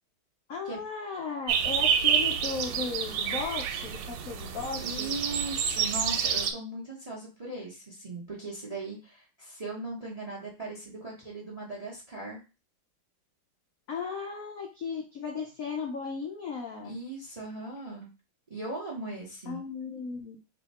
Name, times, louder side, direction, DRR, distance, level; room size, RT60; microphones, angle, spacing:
voice 1, 0.5-5.1 13.9-17.0 19.5-20.4, left 5 dB, 85° left, 1 dB, 0.7 m, -36 dB
sound 1, 1.5-6.5, right 8 dB, 85° right, 1.5 m, -28 dB
voice 2, 4.8-12.4 16.8-18.1 18.5-19.6, right 2 dB, 35° right, -2 dB, 0.5 m, -38 dB
3.4 x 2.8 x 4.1 m, 0.31 s
omnidirectional pair, 2.3 m